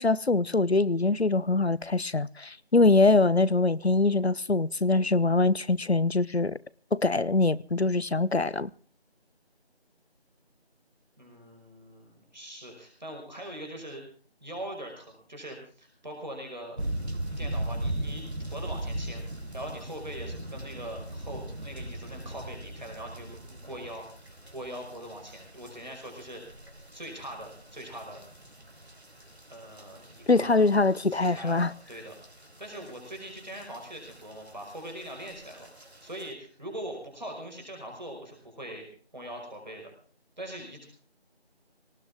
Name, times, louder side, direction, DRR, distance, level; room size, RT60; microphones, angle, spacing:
voice 1, 0.0-6.6 6.9-8.7 30.3-31.7, left 3 dB, 80° left, 1.0 m, -23 dB
voice 2, 11.2-14.0 14.4-16.8 17.4-19.2 19.5-24.0 24.5-26.4 26.9-28.3 29.5-30.6 31.1-32.2 32.6-38.9 39.1-39.9 40.4-40.9, right 1 dB, 45° right, 5.5 m, -42 dB
sound 1, 16.8-36.3, right 1 dB, 80° right, 4.0 m, -40 dB
19.0 x 19.0 x 3.6 m
figure-of-eight pair, 175°, 32 cm